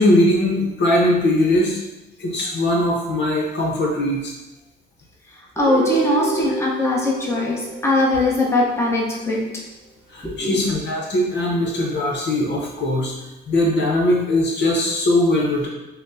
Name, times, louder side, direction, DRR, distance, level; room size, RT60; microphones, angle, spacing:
voice 1, 0.0-1.8 2.2-4.3 10.1-13.1 13.5-15.7, left 1 dB, 60° left, -2 dB, 0.9 m, -20 dB
voice 2, 5.6-9.4 10.2-10.5, left 2 dB, 15° left, -4 dB, 0.9 m, -20 dB
Guitar, 5.6-9.4, right 3 dB, 10° right, 1.3 m, -30 dB
5.6 x 2.2 x 2.7 m, 1.0 s
cardioid pair, 90°, 20 cm